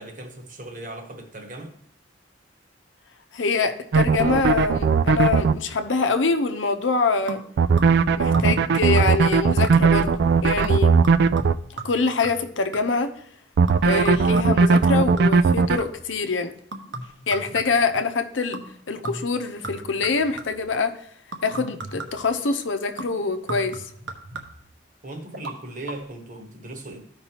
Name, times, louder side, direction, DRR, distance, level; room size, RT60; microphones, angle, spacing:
voice 1, 0.0-1.7 25.0-27.0, right 2 dB, 45° right, 1.3 m, -38 dB
voice 2, 3.3-7.4 8.2-11.0 11.8-13.1 13.8-16.5 17.3-18.6 18.9-21.1 21.4-23.9, left 4 dB, 85° left, 0.8 m, -24 dB
sound 1, 3.9-5.5 7.6-11.5 13.6-15.8, right 5 dB, 60° right, 0.3 m, -18 dB
sound 2, 7.3-8.1 8.3-8.7 9.0-9.4 9.6-10.1 10.6-13.1 13.7-16.1 16.7-18.0 18.5-18.8 19.0-20.7 21.3-22.3 23.0-24.8 25.3-25.6 25.9-26.0, right 2 dB, 75° right, 1.1 m, -37 dB
14.0 x 5.3 x 3.0 m
head